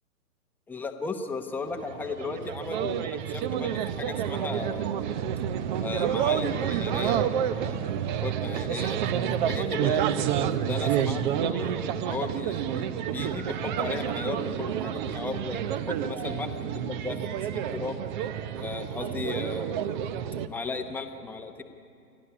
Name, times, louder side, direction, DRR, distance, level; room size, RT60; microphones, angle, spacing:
voice 1, 0.7-5.0 5.8-10.2 10.7-15.6 15.9-18.0 18.6-19.9 20.5-21.6, left 3 dB, 5° left, 4 dB, 1.0 m, -36 dB
sound 1, 1.7-20.5, right 9 dB, 30° right, 0.8 m, -29 dB
29.5 x 12.5 x 9.9 m, 2.5 s
hypercardioid pair, 145°, 46 cm